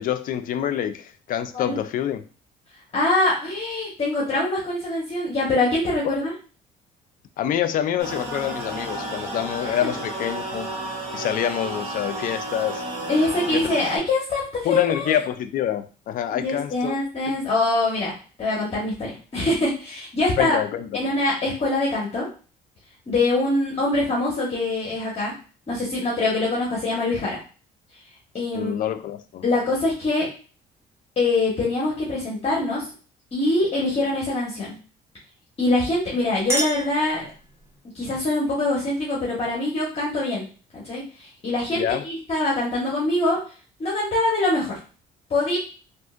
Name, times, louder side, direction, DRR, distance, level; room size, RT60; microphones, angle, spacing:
voice 1, 0.0-2.2 7.4-10.7 11.1-12.8 13.5-13.7 14.6-17.0 20.4-20.9 28.5-29.4 41.8-42.0, left 10 dB, 55° left, 10 dB, 0.4 m, -26 dB
voice 2, 2.9-6.3 9.6-9.9 13.1-14.4 14.7-15.2 16.3-18.1 18.4-20.6 20.9-22.3 23.1-25.3 25.7-27.4 28.3-28.7 29.4-30.3 31.2-32.8 33.3-34.7 35.6-37.3 37.9-40.4 40.7-43.4 43.8-44.8 45.3-45.6, left 2 dB, 35° left, -5 dB, 1.3 m, -24 dB
sound 1, 8.0-14.0, right 1 dB, 35° right, 1.1 m, -32 dB
Chink clink, 36.0-37.8, right 2 dB, 15° right, 0.9 m, -31 dB
3.6 x 2.5 x 2.4 m, 0.37 s
cardioid pair, 110°, 17 cm